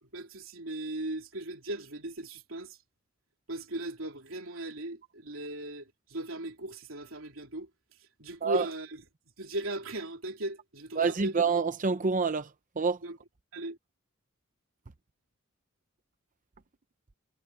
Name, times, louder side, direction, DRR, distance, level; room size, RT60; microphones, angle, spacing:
voice 1, 0.0-2.8 3.5-7.7 8.0-9.0 9.4-11.3 13.0-13.2 13.5-13.8, right 1 dB, 80° right, 3.3 m, -37 dB
voice 2, 11.0-12.5 12.8-13.0, right 5 dB, 40° right, 0.7 m, -27 dB
head